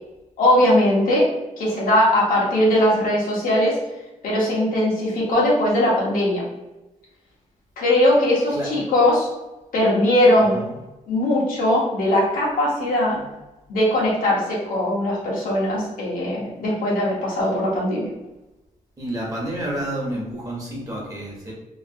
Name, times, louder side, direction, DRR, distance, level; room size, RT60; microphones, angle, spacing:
voice 1, 0.4-1.3 1.6-3.7 4.2-6.4 7.8-9.3 9.7-10.6 11.1-13.2 13.7-18.1, left 1 dB, 80° left, -5 dB, 1.1 m, -20 dB
voice 2, 19.0-21.5, right 1 dB, 25° right, -4 dB, 0.9 m, -29 dB
2.9 x 2.6 x 2.6 m, 1.0 s
wide cardioid pair, 165°, 14 cm